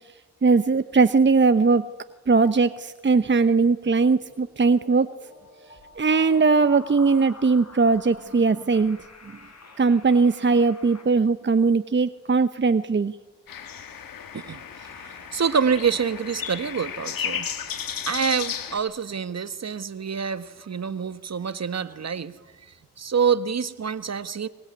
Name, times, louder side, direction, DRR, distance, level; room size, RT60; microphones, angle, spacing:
voice 1, 0.4-1.8 2.3-5.1 6.0-9.0 9.8-13.2, right 4 dB, 35° right, 12 dB, 1.0 m, -20 dB
sound 1, 4.0-11.0, left 3 dB, 50° left, 5.8 m, -47 dB
sound 2, 13.5-18.8, left 8 dB, 75° left, 2.5 m, -34 dB
voice 2, 14.3-22.3 23.0-24.5, right 6 dB, 50° right, 13 dB, 1.6 m, -27 dB
23.5 x 21.0 x 9.7 m, 1.3 s
supercardioid pair, 40°, 34 cm